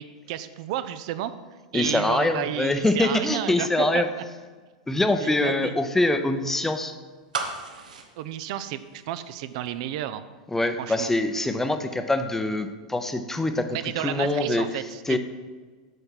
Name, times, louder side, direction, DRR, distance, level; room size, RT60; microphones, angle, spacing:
voice 1, 0.0-1.3 1.7-4.0 5.2-5.7 8.2-10.2 10.8-11.1 13.7-15.2, right 12 dB, 60° right, 12 dB, 0.4 m, -32 dB
voice 2, 1.7-4.1 4.9-6.9 10.5-14.7 15.1-15.2, left 2 dB, 10° left, 8 dB, 0.6 m, -24 dB
sound 1, 7.3-9.4 9.7-9.8, right 5 dB, 85° right, 1.0 m, -34 dB
8.0 x 4.5 x 5.7 m, 1.4 s
hypercardioid pair, 110°, 4 cm